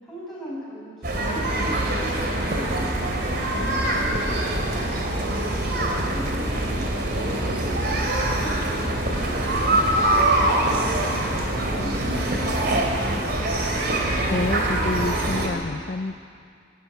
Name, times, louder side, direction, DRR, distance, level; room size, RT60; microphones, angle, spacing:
voice 1, 0.0-5.6 6.1-6.8 7.1-7.5 7.8-11.0 11.3-13.1, equal, ahead, -9 dB, 6.2 m, -40 dB
sound 1, 1.0-15.5, right 1 dB, 50° right, 3.0 m, -24 dB
voice 2, 14.0-16.1, left 2 dB, 45° left, 8 dB, 0.5 m, -29 dB
23.0 x 13.5 x 9.4 m, 2.3 s
head